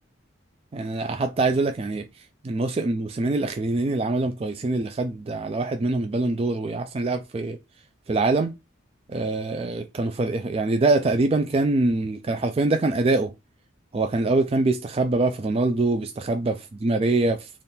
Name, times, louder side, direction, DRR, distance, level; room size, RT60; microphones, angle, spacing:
voice 1, 0.7-2.0 2.4-7.6 8.1-8.5 9.1-13.3 13.9-17.5, right 2 dB, 30° right, 0.3 m, -24 dB
3.4 x 2.4 x 4.2 m
head